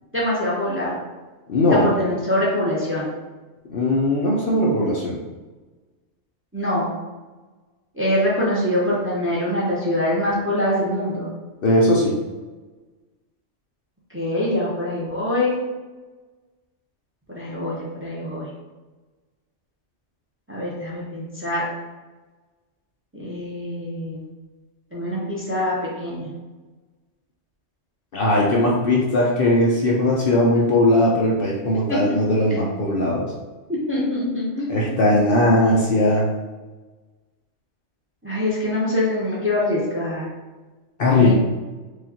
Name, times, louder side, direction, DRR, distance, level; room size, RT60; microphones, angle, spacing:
voice 1, 0.1-0.9 1.7-3.1 6.5-6.9 7.9-11.3 14.1-15.6 17.3-18.5 20.5-21.6 23.1-24.3 24.9-26.3 31.9-32.0 32.5-32.6 33.7-35.1 35.6-35.7 38.2-40.3 41.2-41.3, left 1 dB, 10° right, -6 dB, 0.7 m, -24 dB
voice 2, 1.5-1.9 3.7-5.2 11.6-12.1 28.1-33.3 34.7-36.3 41.0-41.3, left 1 dB, 55° left, -4 dB, 0.7 m, -19 dB
4.7 x 2.4 x 2.8 m, 1.2 s
omnidirectional pair, 1.3 m